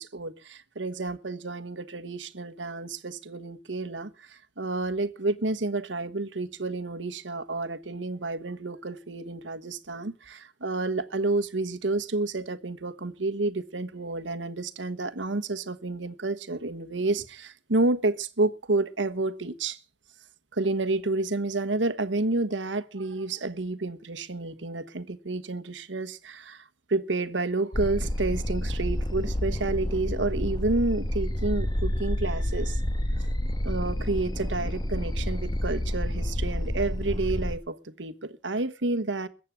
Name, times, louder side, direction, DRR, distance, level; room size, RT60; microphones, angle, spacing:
voice 1, 0.0-19.8 20.5-32.8 33.2-33.3 33.6-39.3, right 2 dB, 90° right, 1.3 m, -30 dB
sound 1, 27.7-37.6, left 1 dB, 25° left, 1.1 m, -29 dB
22.0 x 8.5 x 6.0 m
head